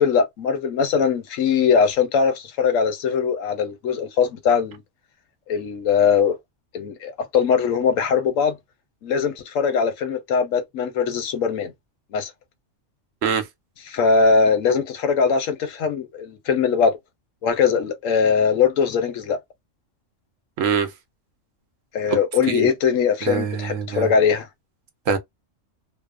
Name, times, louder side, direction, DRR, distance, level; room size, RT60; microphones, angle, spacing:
voice 1, 0.0-4.8 5.5-6.4 6.7-8.6 9.0-11.7 12.1-12.3 13.9-17.0 17.4-19.4 21.9-24.5, left 6 dB, 85° left, 1.1 m, -21 dB
voice 2, 20.6-20.9 22.1-22.2 22.5-22.7 23.2-24.1 25.1-25.2, right 6 dB, 80° right, 1.1 m, -23 dB
2.8 x 2.0 x 2.3 m
omnidirectional pair, 1.3 m